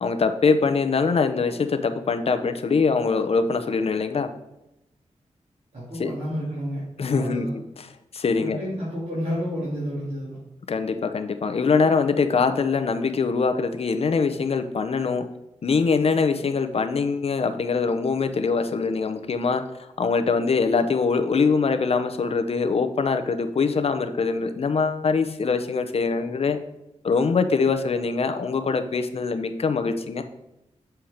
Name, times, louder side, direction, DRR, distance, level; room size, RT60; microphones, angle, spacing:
voice 1, 0.0-4.3 6.0-6.1 7.0-7.5 7.8-7.9 8.1-8.6 10.7-15.2 15.6-26.6 27.0-30.2, left 4 dB, 55° left, 8 dB, 0.6 m, -23 dB
voice 2, 5.7-6.8 7.1-7.5 8.4-10.4, equal, 60° right, -10 dB, 2.9 m, -30 dB
7.1 x 4.5 x 5.1 m, 0.87 s
wide cardioid pair, 120°, 12 cm